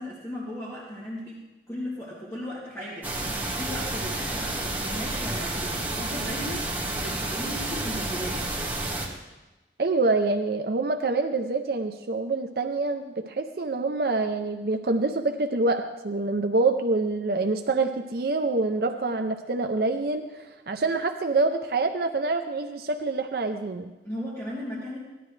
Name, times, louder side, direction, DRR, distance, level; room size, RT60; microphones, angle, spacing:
voice 1, 0.0-1.4 1.7-8.4 24.0-25.0, equal, 15° left, -9 dB, 2.4 m, -36 dB
sound 1, 3.0-9.1, right 2 dB, 10° right, 1.7 m, -30 dB
voice 2, 9.8-23.9, right 3 dB, 60° right, 6 dB, 0.6 m, -26 dB
18.0 x 11.5 x 3.3 m, 1.1 s
head